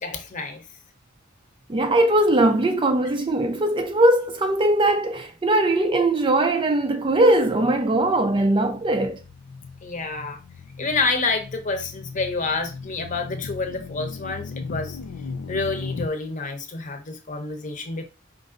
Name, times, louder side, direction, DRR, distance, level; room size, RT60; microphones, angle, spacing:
voice 1, 0.0-0.6 9.8-10.4 10.8-15.0 15.5-18.0, left 3 dB, 35° left, 0.8 m, -28 dB
voice 2, 1.7-9.2, right 1 dB, 25° right, 0.4 m, -20 dB
sound 1, 7.1-16.1, left 5 dB, 80° left, 0.4 m, -38 dB
5.2 x 2.6 x 3.7 m
head